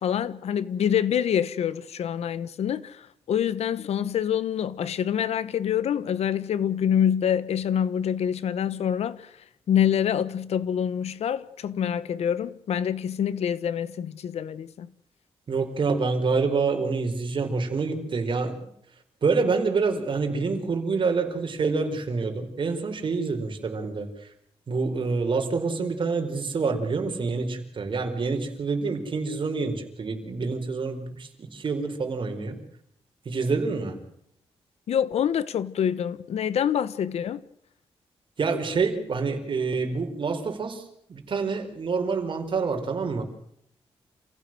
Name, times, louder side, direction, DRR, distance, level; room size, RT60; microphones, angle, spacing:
voice 1, 0.0-9.3 9.7-14.9 34.9-37.4, left 9 dB, 85° left, 1.2 m, -26 dB
voice 2, 15.5-18.6 19.2-24.3 24.7-32.6 33.2-34.0 38.4-43.2, right 4 dB, 50° right, 4.8 m, -27 dB
28.0 x 16.0 x 7.7 m
wide cardioid pair, 120°, 11 cm